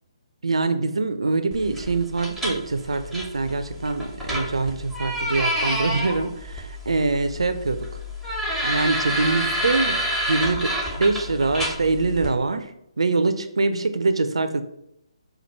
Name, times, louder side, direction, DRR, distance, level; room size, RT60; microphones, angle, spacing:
voice 1, 0.4-8.0 8.6-10.0 10.3-12.7 13.0-14.6, right 3 dB, 70° right, 10 dB, 0.4 m, -24 dB
sound 1, 1.5-12.3, equal, ahead, 0.8 m, -29 dB
4.5 x 2.3 x 4.3 m, 0.79 s
figure-of-eight pair, 140°, 3 cm